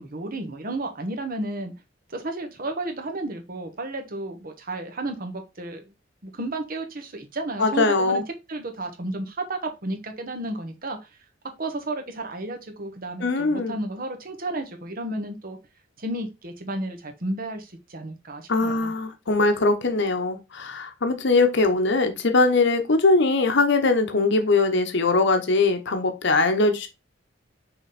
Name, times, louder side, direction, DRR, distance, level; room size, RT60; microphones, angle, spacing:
voice 1, 0.0-1.7 2.1-5.8 6.2-8.2 8.5-11.0 11.6-15.6 16.0-18.9, right 2 dB, 50° right, 1.3 m, -32 dB
voice 2, 7.6-8.2 13.2-13.7 18.5-26.9, left 3 dB, 65° left, 1.0 m, -21 dB
5.8 x 3.9 x 4.2 m
head